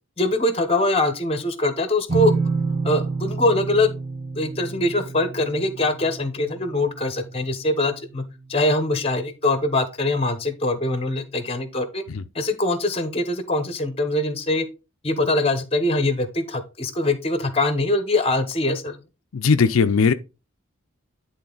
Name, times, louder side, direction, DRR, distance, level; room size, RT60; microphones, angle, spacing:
voice 1, 0.2-2.3 2.8-3.9 4.4-8.2 8.5-12.0 12.3-14.7 15.0-19.0, left 2 dB, 30° left, 1.0 m, -23 dB
sound 1, 2.1-7.7, right 4 dB, 25° right, 1.4 m, -28 dB
voice 2, 19.3-20.1, left 5 dB, 90° left, 0.5 m, -18 dB
10.5 x 3.9 x 3.9 m
head